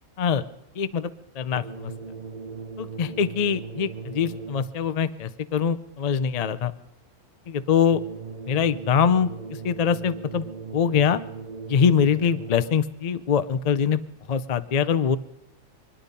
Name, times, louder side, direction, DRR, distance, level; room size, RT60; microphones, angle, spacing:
voice 1, 0.8-1.9 2.8-6.7 7.5-8.0 8.5-9.3 9.6-10.5 10.7-11.2 11.7-14.0 14.3-15.2, left 7 dB, 75° left, 13 dB, 0.3 m, -23 dB
sound 1, 1.5-4.9 7.9-12.9, right 4 dB, 40° right, 0.6 m, -38 dB
25.5 x 10.0 x 5.3 m, 0.88 s
omnidirectional pair, 1.6 m